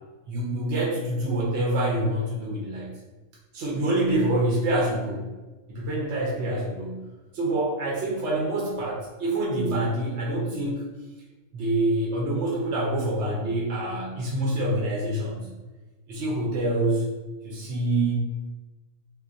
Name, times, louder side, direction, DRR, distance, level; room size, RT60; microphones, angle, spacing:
voice 1, 0.3-2.9 3.5-5.3 5.7-7.0 7.3-10.9 11.5-15.5 16.1-17.1 17.4-18.1, right 1 dB, 60° right, -3 dB, 0.9 m, -26 dB
3.6 x 2.5 x 2.5 m, 1.2 s
omnidirectional pair, 1.5 m